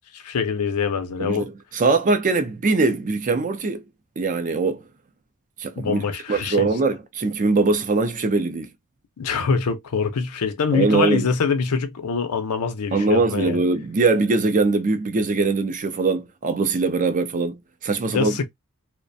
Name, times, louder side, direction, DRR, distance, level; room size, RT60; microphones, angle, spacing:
voice 1, 0.1-1.5 5.8-6.7 9.2-13.6 18.1-18.5, left 5 dB, 80° left, 0.5 m, -24 dB
voice 2, 1.2-3.8 4.2-4.8 5.6-6.0 6.3-8.7 10.7-11.3 12.9-18.4, right 3 dB, 35° right, 0.4 m, -22 dB
2.4 x 2.1 x 2.5 m
head